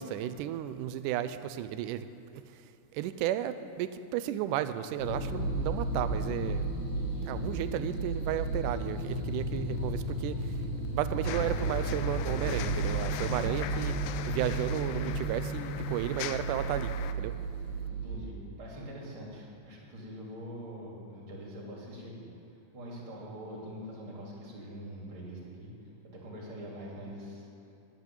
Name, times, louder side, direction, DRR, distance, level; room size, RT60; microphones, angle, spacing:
voice 1, 0.0-2.1 2.3-6.7 7.3-10.6 10.9-14.0 14.3-17.3, right 11 dB, 80° right, 12 dB, 1.9 m, -34 dB
sound 1, 5.0-18.2, right 3 dB, 35° left, 3.2 m, -34 dB
voice 2, 6.9-7.3 13.1-13.4 17.9-22.3 22.7-25.7 26.0-27.5, equal, 40° right, -3 dB, 3.2 m, -44 dB
sound 2, 9.2-16.0, left 2 dB, 70° left, 2.5 m, -39 dB
sound 3, 11.2-17.1, left 11 dB, 90° left, 2.4 m, -40 dB
13.0 x 8.4 x 9.1 m, 2.7 s
omnidirectional pair, 4.1 m